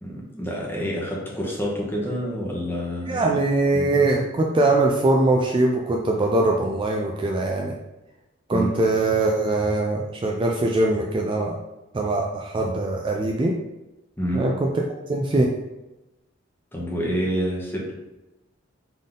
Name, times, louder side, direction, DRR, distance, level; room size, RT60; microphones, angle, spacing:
voice 1, 0.0-3.4 3.7-4.0 8.5-8.7 14.2-14.4 16.7-17.9, equal, 10° left, -4 dB, 1.0 m, -28 dB
voice 2, 3.1-7.8 8.5-11.6 11.9-13.5 14.3-14.7 15.1-15.5, right 2 dB, 25° right, 0 dB, 0.3 m, -22 dB
3.9 x 3.7 x 3.7 m, 1.0 s
head